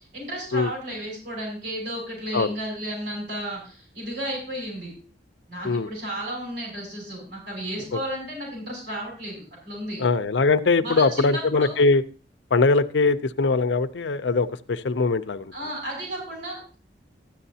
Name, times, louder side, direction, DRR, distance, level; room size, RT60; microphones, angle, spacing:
voice 1, 0.1-4.9 5.5-10.0 10.8-11.8 15.5-16.7, right 1 dB, 75° right, -2 dB, 6.6 m, -33 dB
voice 2, 10.0-12.0 12.5-15.5, left 3 dB, 85° left, 11 dB, 0.6 m, -21 dB
13.0 x 10.0 x 2.7 m, 0.37 s
head